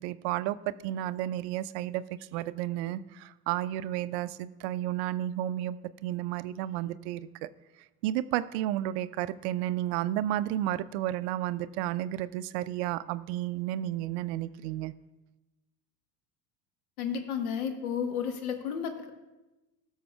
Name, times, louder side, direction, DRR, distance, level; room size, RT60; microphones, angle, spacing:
voice 1, 0.0-2.0 2.3-5.8 6.0-7.5 8.0-14.9, right 13 dB, 45° right, 15 dB, 0.4 m, -32 dB
voice 2, 17.0-19.1, left 7 dB, 65° left, 7 dB, 1.3 m, -32 dB
19.0 x 6.3 x 2.3 m, 1.1 s
figure-of-eight pair, 70°, 48 cm